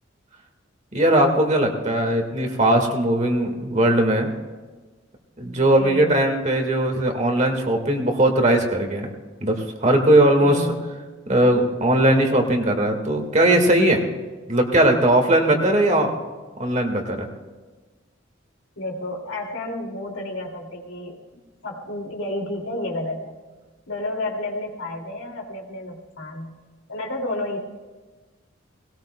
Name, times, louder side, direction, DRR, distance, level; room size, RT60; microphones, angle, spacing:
voice 1, 0.9-4.3 5.4-9.1 9.4-10.7 11.3-14.1 14.5-16.1 16.6-17.3, right 1 dB, 35° right, 3 dB, 1.7 m, -19 dB
voice 2, 5.8-6.2 10.4-10.9 18.8-21.2 21.6-23.3 23.9-26.6 26.9-27.6, left 1 dB, 90° left, 0 dB, 2.5 m, -31 dB
19.0 x 18.0 x 2.2 m, 1.3 s
head